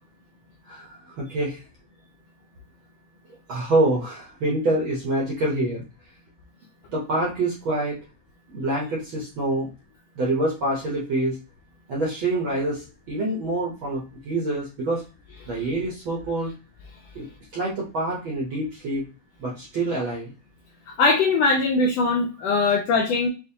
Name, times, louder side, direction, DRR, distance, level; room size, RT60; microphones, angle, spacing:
voice 1, 0.7-1.6 3.5-5.8 6.9-8.0 8.5-9.7 10.2-11.4 11.9-15.0 15.4-16.5 17.1-17.3 17.5-19.0 19.4-20.3 22.6-22.7, right 2 dB, 65° right, -3 dB, 1.2 m, -26 dB
voice 2, 21.0-23.3, left 3 dB, 85° left, 1 dB, 1.4 m, -21 dB
5.4 x 2.5 x 2.7 m, 0.32 s
omnidirectional pair, 3.4 m